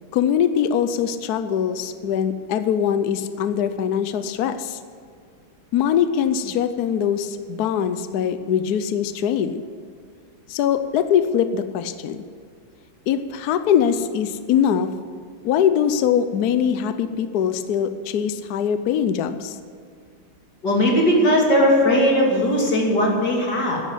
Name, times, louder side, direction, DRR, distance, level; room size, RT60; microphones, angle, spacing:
voice 1, 0.1-4.8 5.7-9.6 10.5-12.2 13.1-14.9 15.4-19.6, left 8 dB, 70° left, 10 dB, 0.9 m, -22 dB
voice 2, 20.6-23.8, equal, 50° left, -1 dB, 3.4 m, -18 dB
12.0 x 11.0 x 8.3 m, 2.1 s
omnidirectional pair, 2.3 m